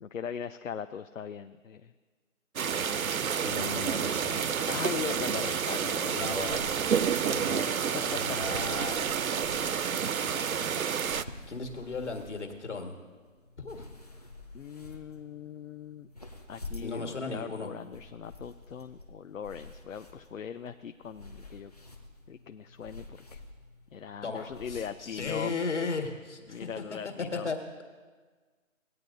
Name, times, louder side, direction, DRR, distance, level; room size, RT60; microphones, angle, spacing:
voice 1, 0.0-1.9 4.7-6.4 7.2-8.4 8.8-9.0 14.5-16.1 16.5-21.7 22.3-23.4 23.9-25.5 26.5-27.5, left 7 dB, 75° left, 9 dB, 0.6 m, -40 dB
sound 1, 2.6-11.2, right 7 dB, 90° right, 0.6 m, -29 dB
voice 2, 3.1-4.4 5.3-5.4 6.1-6.6 8.0-9.0 11.5-13.0 13.6-13.9 16.8-17.7 24.2-26.7 27.4-27.6, left 4 dB, 60° left, 4 dB, 1.7 m, -36 dB
sound 2, 6.3-25.3, left 2 dB, 30° left, 0.7 m, -49 dB
18.0 x 9.2 x 2.6 m, 1.4 s
figure-of-eight pair, 170°, 41 cm